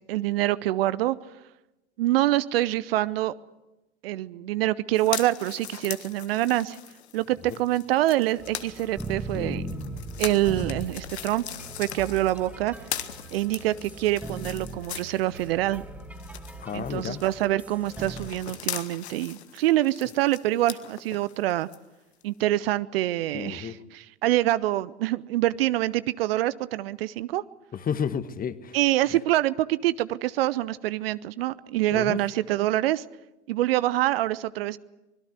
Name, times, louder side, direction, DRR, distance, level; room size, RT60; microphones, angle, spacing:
voice 1, 0.1-1.2 2.0-3.3 4.0-6.8 7.1-9.6 10.2-11.4 11.8-12.7 13.3-15.9 16.7-21.7 22.2-27.4 28.7-33.0 33.5-34.8, right 15 dB, 60° right, 17 dB, 0.8 m, -25 dB
sound 1, 4.9-15.7 16.0-21.8 22.2-22.3, left 10 dB, 70° left, 1.6 m, -40 dB
sound 2, 8.4-18.3, right 2 dB, 5° right, 2.7 m, -39 dB
voice 2, 16.6-17.2 23.3-23.8 27.7-28.8 31.9-32.2, left 7 dB, 25° left, 13 dB, 1.6 m, -31 dB
25.0 x 21.5 x 8.2 m, 0.97 s
figure-of-eight pair, 75°, 34 cm